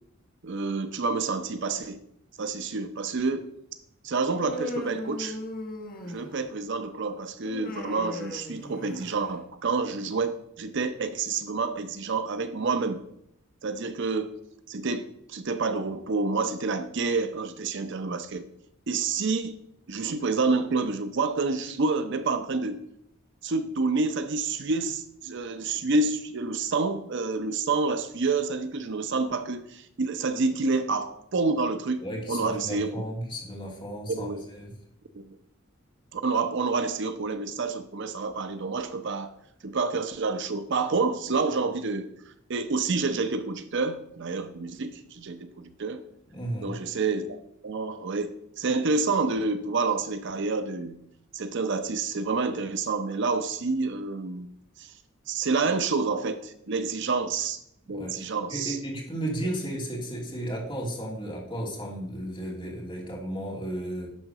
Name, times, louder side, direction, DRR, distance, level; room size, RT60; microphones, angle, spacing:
voice 1, 0.4-2.0 2.4-3.5 4.0-5.4 6.0-13.0 13.6-14.3 14.7-18.5 18.9-19.6 19.9-22.8 23.4-33.0 34.1-34.4 35.1-35.2 36.1-39.3 39.6-42.1 42.5-46.1 46.6-47.4 47.6-51.0 51.3-54.5 54.8-54.9 55.3-57.6 57.9-58.8, right 4 dB, 60° right, 10 dB, 0.6 m, -28 dB
Human voice, 4.3-6.6 7.4-9.3, left 1 dB, 45° left, 1.3 m, -37 dB
voice 2, 32.0-34.7 46.3-46.8 57.9-64.1, right 1 dB, 25° left, -3 dB, 2.7 m, -34 dB
10.5 x 3.9 x 6.6 m, 0.75 s
head